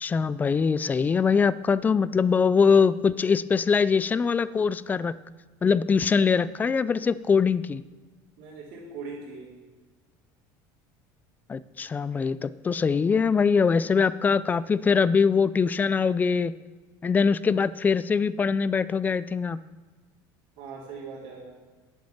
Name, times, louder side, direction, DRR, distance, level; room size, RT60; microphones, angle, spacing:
voice 1, 0.0-5.2 5.6-7.8 11.5-16.5 17.0-19.6, left 5 dB, 20° left, 17 dB, 0.4 m, -23 dB
voice 2, 8.4-9.5 20.6-21.5, right 4 dB, 70° right, -8 dB, 3.6 m, -40 dB
11.5 x 9.3 x 7.2 m, 1.4 s
cardioid pair, 145°, 9 cm